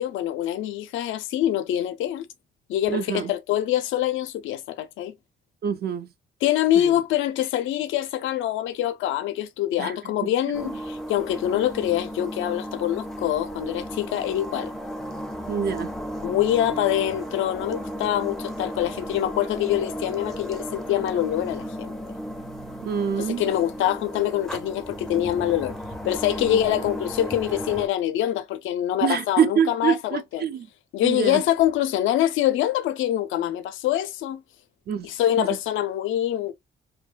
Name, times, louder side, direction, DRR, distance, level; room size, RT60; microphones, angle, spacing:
voice 1, 0.0-2.3 2.7-5.1 6.4-14.7 16.2-21.9 23.2-25.7 26.0-30.5 30.9-34.4 35.0-36.5, left 12 dB, 80° left, 0.4 m, -25 dB
voice 2, 2.9-3.3 5.6-6.1 6.8-6.9 9.8-9.9 10.2-10.7 15.5-15.9 22.8-23.5 29.0-30.7 31.0-31.4 34.9-35.1 35.4-35.6, right 8 dB, 55° right, 0.4 m, -26 dB
sound 1, 10.5-27.9, equal, ahead, 0.4 m, -35 dB
2.7 x 2.1 x 2.2 m
cardioid pair, 90°, 20 cm